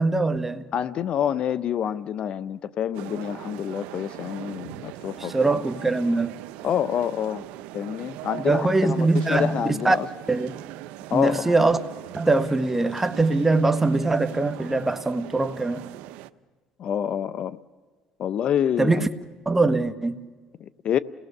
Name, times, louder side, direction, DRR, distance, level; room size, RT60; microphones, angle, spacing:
voice 1, 0.0-0.6 5.2-6.4 8.4-10.0 10.3-10.6 11.1-11.8 12.1-15.8 18.8-19.1 19.4-20.2, right 3 dB, 10° right, 1.2 m, -22 dB
voice 2, 0.7-5.6 6.6-7.5 7.7-10.1 11.1-11.5 16.8-17.6 18.2-19.1 20.6-21.0, left 9 dB, 50° left, 0.6 m, -27 dB
sound 1, 2.9-16.3, right 16 dB, 85° right, 0.7 m, -40 dB
29.0 x 19.0 x 6.7 m
cardioid pair, 110°, 2 cm